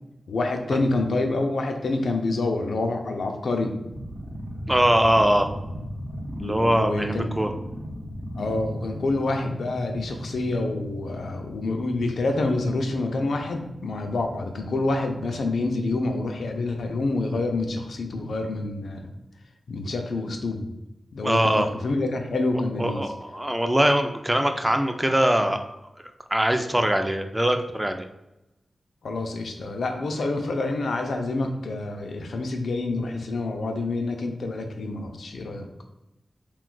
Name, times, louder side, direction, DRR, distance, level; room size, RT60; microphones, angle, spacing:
voice 1, 0.3-3.8 6.4-7.3 8.4-19.1 19.7-20.7 21.1-23.1 29.0-35.7, left 2 dB, 85° left, 4 dB, 0.4 m, -27 dB
sound 1, 3.8-18.7, equal, 70° right, 0.8 m, -38 dB
voice 2, 4.7-5.5 6.4-7.5 21.2-21.7 22.8-25.6 26.3-28.0, right 1 dB, 10° right, 5 dB, 0.3 m, -22 dB
2.5 x 2.3 x 3.7 m, 0.93 s
cardioid pair, 70°, 0 cm